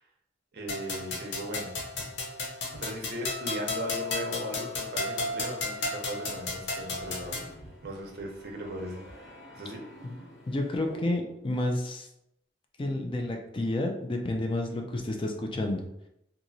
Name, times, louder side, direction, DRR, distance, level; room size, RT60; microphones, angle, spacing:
voice 1, 0.5-2.0 2.7-7.5 7.8-9.0 9.5-9.8, right 1 dB, 55° right, 0 dB, 0.6 m, -38 dB
sound 1, 0.7-7.5, left 3 dB, 75° left, 0.6 m, -34 dB
sound 2, 6.4-11.6, left 1 dB, ahead, 1.0 m, -50 dB
voice 2, 10.5-12.1 12.8-15.9, left 1 dB, 30° left, 2 dB, 0.4 m, -30 dB
2.9 x 2.4 x 2.6 m, 0.79 s
head